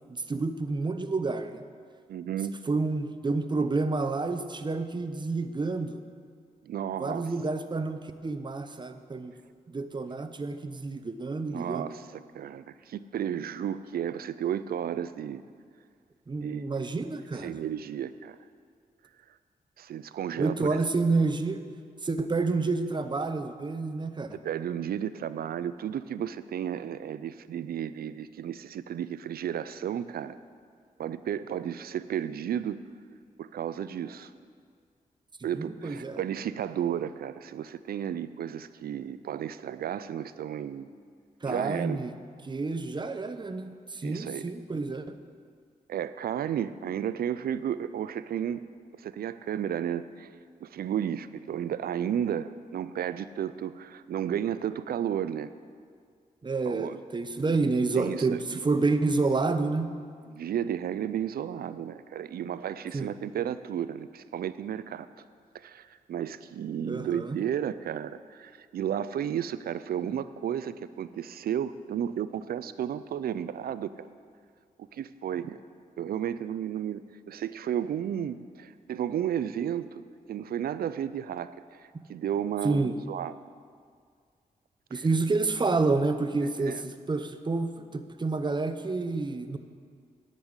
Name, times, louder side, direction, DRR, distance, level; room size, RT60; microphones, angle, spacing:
voice 1, 0.1-1.6 2.7-6.0 7.0-9.3 9.7-11.9 16.3-17.5 20.4-21.6 22.0-24.3 35.6-36.2 41.4-42.1 42.4-45.2 56.4-59.9 62.9-63.1 66.9-67.4 82.6-83.0 84.9-89.6, right 3 dB, 30° right, 9 dB, 0.7 m, -29 dB
voice 2, 2.1-2.6 6.6-7.3 11.5-12.1 12.3-15.4 16.4-16.6 17.4-18.4 19.8-20.8 24.4-30.3 31.0-32.8 33.4-34.3 35.4-40.9 41.4-42.0 44.0-44.4 45.9-48.6 49.0-50.3 50.6-55.5 56.6-57.0 57.4-57.5 57.9-58.6 60.3-65.1 65.6-74.1 74.9-75.6 76.0-80.0 80.3-83.3 84.9-85.0 86.6-86.8, right 9 dB, 80° right, 14 dB, 0.4 m, -33 dB
10.5 x 5.4 x 8.0 m, 2.1 s
cardioid pair, 60°, 15 cm